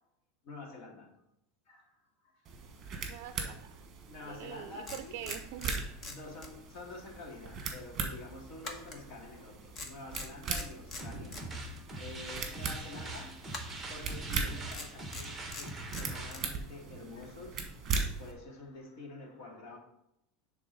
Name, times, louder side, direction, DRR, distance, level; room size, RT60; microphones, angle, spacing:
voice 1, 0.4-1.2 1.7-2.4 4.1-5.4 6.1-11.4 12.0-13.5 13.9-19.8, left 3 dB, 60° left, 2.1 m, -48 dB
sound 1, 2.4-18.3, right 5 dB, 30° right, 1.4 m, -40 dB
voice 2, 3.1-3.8 4.3-5.8, right 11 dB, 60° right, 0.4 m, -44 dB
sound 2, 4.4-4.5 4.9-6.9 7.2-7.4 8.6-9.5 9.7-11.5 13.5-14.0 14.7-16.5, left 3 dB, 30° left, 1.1 m, -44 dB
sound 3, 10.9-16.5, right 2 dB, 10° right, 1.2 m, -43 dB
10.0 x 3.7 x 4.0 m
supercardioid pair, 140°, 0 cm